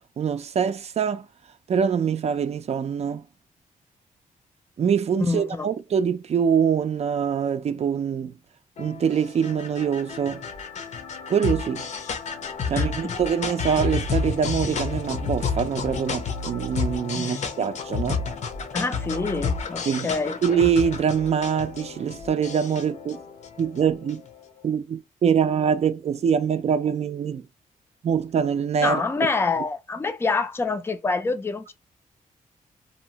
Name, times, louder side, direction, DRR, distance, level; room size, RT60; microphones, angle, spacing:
voice 1, 0.2-1.3 1.7-3.2 4.8-8.3 8.8-10.5 11.3-11.9 12.7-18.2 19.9-20.1 20.4-23.2 23.6-24.2 24.6-27.4 28.0-29.0, right 7 dB, 45° right, 0.4 m, -24 dB
voice 2, 5.3-5.7 12.7-13.1 17.1-17.4 18.7-20.4 28.8-31.7, left 4 dB, 15° left, 0.4 m, -26 dB
sound 1, 8.8-24.3, left 5 dB, 55° left, 0.6 m, -31 dB
2.7 x 2.1 x 2.7 m
cardioid pair, 110°, 15 cm